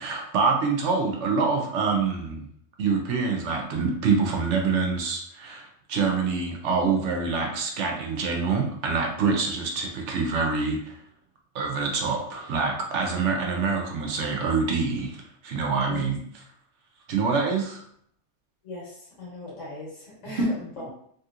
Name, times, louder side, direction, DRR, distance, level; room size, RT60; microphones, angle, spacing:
voice 1, 0.0-2.5 2.8-10.9 11.5-16.2 17.1-17.8, right 4 dB, 75° right, 1 dB, 1.0 m, -26 dB
voice 2, 18.6-20.9, left 2 dB, 75° left, -5 dB, 1.6 m, -39 dB
3.1 x 2.8 x 2.4 m, 0.65 s
omnidirectional pair, 1.3 m